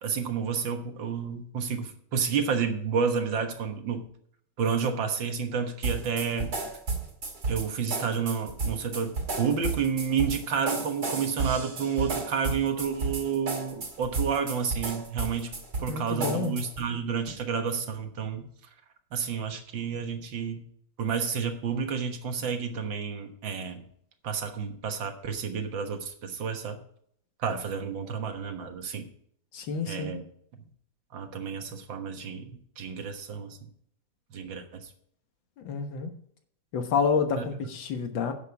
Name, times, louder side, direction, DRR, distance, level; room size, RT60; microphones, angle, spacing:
voice 1, 0.0-4.1 4.6-6.5 7.5-9.1 9.4-15.5 15.8-18.5 19.1-20.7 21.0-23.8 24.2-26.8 27.4-29.1 29.9-30.2 31.1-33.6 34.3-34.9, right 6 dB, 80° right, 6 dB, 2.1 m, -30 dB
sound 1, 5.8-16.9, right 3 dB, 55° right, 2.4 m, -33 dB
voice 2, 15.9-16.6 29.5-30.2 35.6-36.1 36.7-38.3, left 5 dB, 85° left, 6 dB, 2.0 m, -29 dB
10.5 x 7.7 x 4.7 m, 0.65 s
omnidirectional pair, 2.0 m